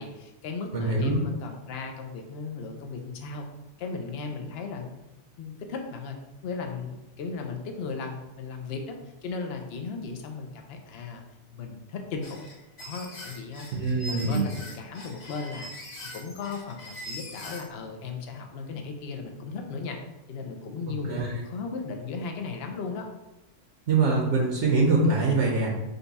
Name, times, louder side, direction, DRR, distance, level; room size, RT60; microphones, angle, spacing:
voice 1, 0.0-3.5 3.8-5.0 5.4-6.2 6.4-9.0 9.2-11.2 11.5-12.4 12.8-13.7 14.0-15.7 16.0-20.0 20.3-23.1, left 4 dB, 60° left, 3 dB, 0.8 m, -36 dB
voice 2, 0.7-1.2 13.8-14.4 21.1-21.3 23.9-25.7, right 3 dB, 65° right, -2 dB, 1.1 m, -23 dB
sound 1, 12.2-17.7, equal, 35° left, 0.9 m, -42 dB
5.3 x 2.3 x 4.0 m, 1.0 s
omnidirectional pair, 1.4 m